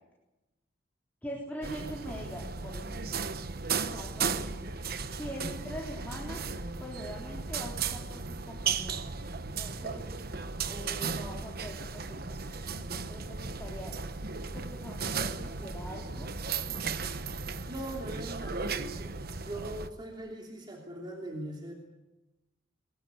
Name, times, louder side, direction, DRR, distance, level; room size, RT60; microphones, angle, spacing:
voice 1, 1.2-3.1 3.9-4.8 5.2-6.5 6.8-9.1 9.6-10.0 10.7-13.9 14.5-16.3, equal, 10° left, -3 dB, 4.0 m, -43 dB
sound 1, 1.6-19.9, right 5 dB, 50° right, 1.1 m, -36 dB
voice 2, 17.7-19.2 19.4-21.7, right 1 dB, 25° right, 0 dB, 3.0 m, -40 dB
22.5 x 22.0 x 8.2 m, 1.0 s
head